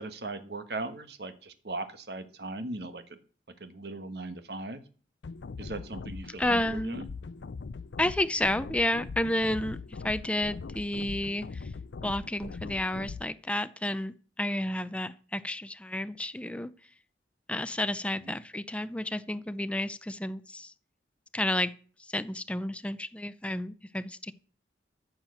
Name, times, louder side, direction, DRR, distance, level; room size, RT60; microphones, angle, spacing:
voice 1, 0.0-3.0 3.6-4.8 5.6-7.1 18.2-18.3, right 2 dB, 65° right, 1.4 m, -38 dB
sound 1, 5.2-13.2, left 4 dB, 85° left, 0.5 m, -41 dB
voice 2, 6.4-7.0 8.0-11.7 12.0-16.7 17.5-20.7 21.3-21.7 22.0-24.3, left 1 dB, 5° left, 0.5 m, -31 dB
14.0 x 7.4 x 6.4 m
head